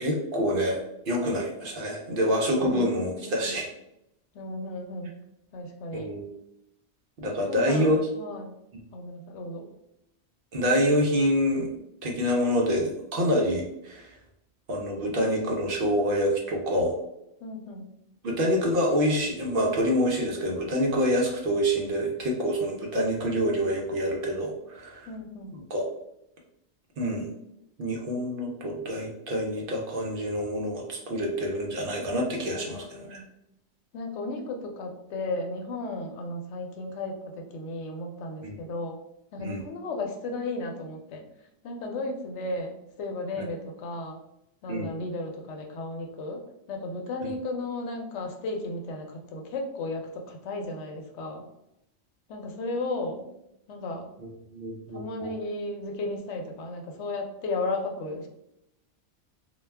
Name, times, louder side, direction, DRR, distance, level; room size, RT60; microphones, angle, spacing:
voice 1, 0.0-3.7 5.9-6.3 7.2-8.0 10.5-11.7 12.0-14.1 14.7-17.0 18.2-25.1 25.5-25.9 27.0-27.3 27.8-33.2 38.4-38.6 39.4-39.6 44.7-44.9 47.2-47.3 54.5-55.3, equal, 60° right, -1 dB, 0.7 m, -27 dB
voice 2, 2.6-3.5 4.3-5.2 5.5-6.2 7.3-8.5 8.9-9.7 17.4-17.8 25.1-25.5 32.6-33.3 33.9-39.0 39.3-41.2 41.6-44.2 44.6-46.4 46.7-51.4 52.3-53.2 53.7-54.1 54.9-58.3, left 2 dB, 80° left, 2 dB, 0.9 m, -34 dB
2.3 x 2.2 x 3.2 m, 0.82 s
omnidirectional pair, 1.2 m